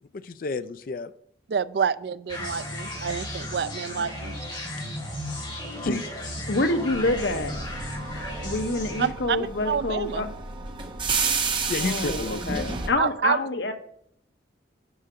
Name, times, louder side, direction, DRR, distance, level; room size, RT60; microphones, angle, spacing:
voice 1, 0.1-1.1 4.6-5.0 5.8-6.3 11.7-12.8, left 3 dB, 50° left, 13 dB, 0.4 m, -32 dB
voice 2, 1.5-4.3 9.0-10.3 13.0-13.4, right 6 dB, 65° right, 16 dB, 0.4 m, -28 dB
sound 1, 2.3-9.1, left 1 dB, 30° left, 3.2 m, -35 dB
voice 3, 6.5-7.6 8.4-10.3 11.8-13.7, left 2 dB, 75° left, 6 dB, 1.0 m, -27 dB
sound 2, 6.9-12.9, right 4 dB, 25° right, 0.9 m, -31 dB
9.9 x 5.6 x 5.0 m, 0.69 s
head